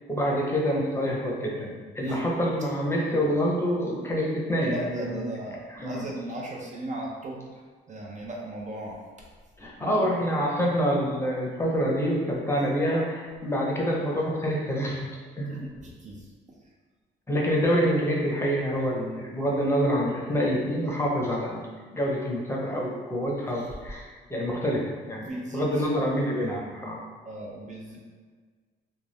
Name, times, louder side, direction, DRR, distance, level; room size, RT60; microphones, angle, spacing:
voice 1, 0.1-5.3 5.7-6.1 9.6-15.0 15.3-15.7 17.3-27.0, equal, 15° left, -3 dB, 0.7 m, -27 dB
voice 2, 4.7-7.5 7.9-9.0 9.8-10.1 15.5-16.3 25.2-26.1 27.2-28.0, right 1 dB, 40° right, -2 dB, 0.5 m, -37 dB
2.5 x 2.2 x 3.4 m, 1.5 s
cardioid pair, 90°, 20 cm